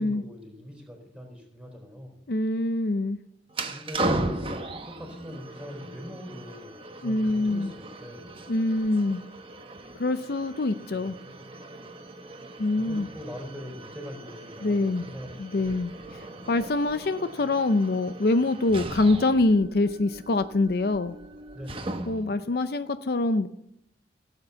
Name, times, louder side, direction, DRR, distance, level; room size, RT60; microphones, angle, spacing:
voice 1, 0.0-2.2 3.7-4.3 4.8-8.3 10.9-11.2 12.8-15.3 15.5-15.7 21.5-22.0, equal, 5° right, 1 dB, 3.9 m, -42 dB
voice 2, 2.3-3.2 7.0-7.7 8.5-9.2 10.0-11.1 12.6-13.1 14.6-15.1 15.4-21.2 22.1-23.5, left 2 dB, 55° left, 11 dB, 0.5 m, -25 dB
sound 1, 3.5-22.4, right 2 dB, 30° right, 1.1 m, -37 dB
16.5 x 8.1 x 6.9 m, 0.76 s
head